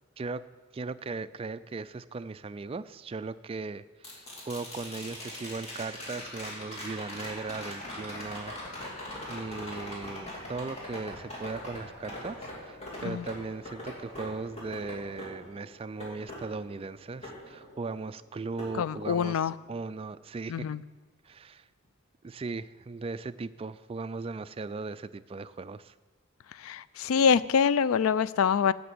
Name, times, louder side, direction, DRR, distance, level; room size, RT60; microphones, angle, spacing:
voice 1, 0.7-20.7 21.2-21.7 22.2-25.9, right 3 dB, 25° right, 14 dB, 0.3 m, -38 dB
sound 1, 4.0-18.1 18.6-19.6 21.8-21.9, left 1 dB, 30° left, 2.8 m, -42 dB
voice 2, 18.8-19.5 20.5-20.8 26.6-28.7, left 6 dB, 80° left, 18 dB, 0.3 m, -25 dB
12.5 x 5.9 x 7.9 m, 1.3 s
head